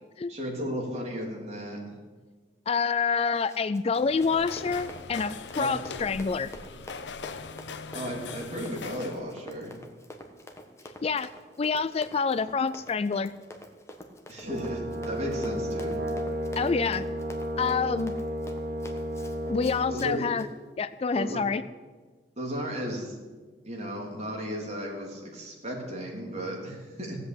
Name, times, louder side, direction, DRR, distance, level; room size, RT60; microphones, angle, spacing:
voice 1, 0.3-1.8 5.6-5.7 7.9-9.7 14.3-16.0 19.9-20.2 21.1-21.4 22.4-23.2 23.6-27.2, equal, 40° right, -1 dB, 3.4 m, -34 dB
voice 2, 2.7-6.5 11.0-11.3 11.6-13.3 16.6-17.0 17.6-18.1 19.5-20.5 20.8-21.6, left 5 dB, 35° left, 14 dB, 0.3 m, -27 dB
Run, 3.3-20.5, equal, 15° left, 1.3 m, -47 dB
sound 1, 3.9-9.3, left 5 dB, 80° left, 0.7 m, -41 dB
Brass instrument, 14.4-19.9, equal, 65° right, 2.6 m, -32 dB
16.0 x 8.1 x 8.6 m, 1.4 s
head